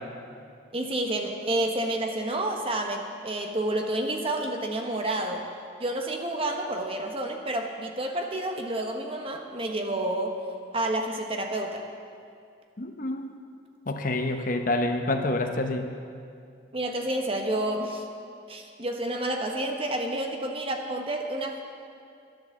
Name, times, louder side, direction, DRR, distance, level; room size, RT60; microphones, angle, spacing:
voice 1, 0.7-5.4 5.8-10.3 10.7-11.8 16.7-18.0 18.5-21.6, right 1 dB, 30° right, 3 dB, 1.2 m, -29 dB
voice 2, 12.8-13.3 13.9-15.9, left 2 dB, 45° left, 5 dB, 0.9 m, -27 dB
12.0 x 10.5 x 7.2 m, 2.3 s
head